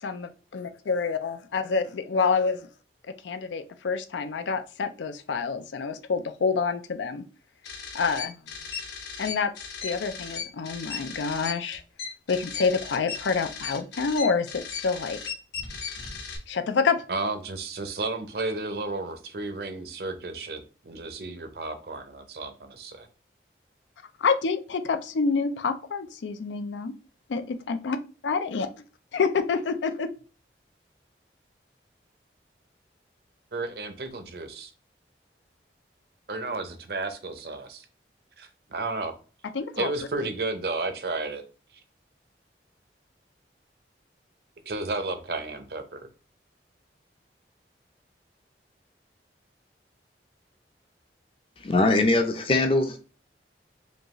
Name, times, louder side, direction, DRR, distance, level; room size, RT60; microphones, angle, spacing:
voice 1, 0.0-2.7 3.2-7.2 7.9-8.4 9.2-9.5 9.8-11.8 12.3-15.2 16.5-17.0 24.2-26.9 27.3-28.0 28.2-28.7 29.1-30.1 39.5-39.9, left 5 dB, 90° left, 0.4 m, -27 dB
sound 1, 7.6-16.4, left 6 dB, 75° left, 1.4 m, -36 dB
voice 2, 17.1-23.1 33.5-34.7 36.3-37.8 38.4-39.1 39.8-41.4 44.7-46.1, right 3 dB, 60° right, 0.6 m, -32 dB
voice 3, 51.6-53.0, left 2 dB, 30° left, 0.5 m, -22 dB
5.1 x 2.4 x 3.0 m
head